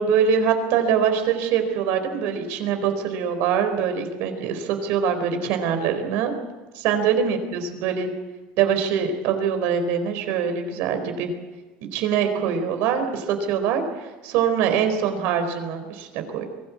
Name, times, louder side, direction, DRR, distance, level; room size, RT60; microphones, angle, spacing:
voice 1, 0.0-6.4 6.7-8.1 8.6-11.3 11.9-13.8 14.2-16.5, right 7 dB, 70° right, 7 dB, 4.3 m, -23 dB
23.5 x 17.5 x 8.6 m, 1.2 s
cardioid pair, 155°, 4 cm